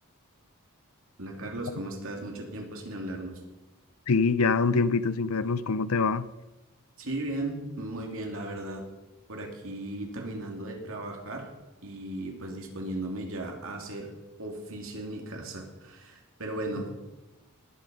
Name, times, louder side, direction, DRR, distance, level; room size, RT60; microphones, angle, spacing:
voice 1, 1.2-3.3 7.0-8.8 9.3-11.5 11.8-14.1 14.4-16.9, right 1 dB, 65° right, 2.8 m, -36 dB
voice 2, 4.1-6.3, left 4 dB, 80° left, 0.6 m, -24 dB
19.5 x 8.6 x 5.4 m
head